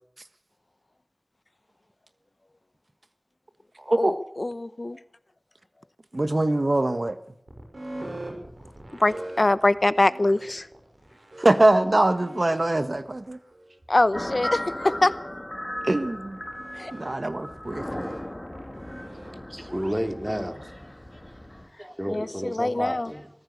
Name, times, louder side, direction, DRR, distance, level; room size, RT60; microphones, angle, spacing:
voice 1, 3.9-5.0 9.0-10.7 13.9-15.1 16.7-16.9 22.1-23.1, left 2 dB, 60° left, 0.9 m, -23 dB
voice 2, 6.1-7.2 11.4-13.4 14.9-15.0 15.8-16.4 16.9-18.1, right 2 dB, 65° right, 1.4 m, -23 dB
sound 1, 7.5-19.9, right 1 dB, 85° right, 6.5 m, -43 dB
sound 2, 14.1-21.7, left 1 dB, 25° left, 2.7 m, -36 dB
voice 3, 19.5-20.9 21.8-23.3, equal, 15° right, 3.1 m, -31 dB
24.0 x 15.5 x 8.3 m
wide cardioid pair, 40°, 0 cm